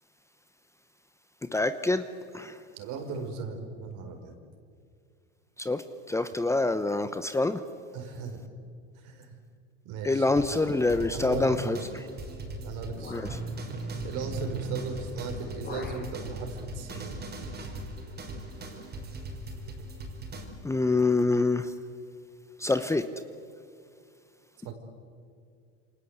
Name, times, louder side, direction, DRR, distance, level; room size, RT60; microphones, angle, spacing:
voice 1, 1.5-2.0 2.3-2.5 5.6-5.8 6.1-7.6 10.0-11.8 13.1-13.2 20.6-21.6 22.6-23.0, left 2 dB, 10° left, 11 dB, 0.9 m, -25 dB
voice 2, 2.7-4.3 7.9-8.4 9.0-9.4 9.8-10.3 11.1-11.9 12.6-13.3 14.0-17.2 24.6-24.7, right 4 dB, 60° right, 5 dB, 5.0 m, -37 dB
sound 1, 10.4-20.4, right 2 dB, 30° right, 5.0 m, -39 dB
sound 2, 10.6-11.4 12.3-12.4 12.9-13.4 14.8-15.0 15.3-16.1, left 3 dB, 30° left, 5.9 m, -42 dB
28.0 x 26.0 x 8.1 m, 2.3 s
supercardioid pair, 125°, 33 cm